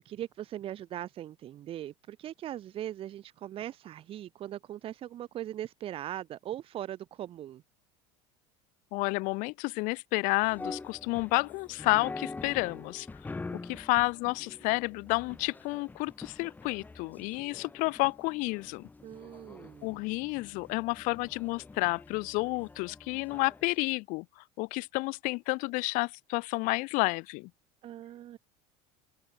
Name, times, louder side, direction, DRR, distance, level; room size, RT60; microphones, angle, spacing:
voice 1, 0.0-7.6 19.0-20.0 27.8-28.4, right 12 dB, 40° right, 1.8 m, -40 dB
voice 2, 8.9-13.1 13.6-18.8 19.8-27.5, left 26 dB, 65° left, 2.0 m, -30 dB
sound 1, 10.4-23.7, left 3 dB, 10° left, 4.3 m, -45 dB
open air
supercardioid pair, 140°, 15 cm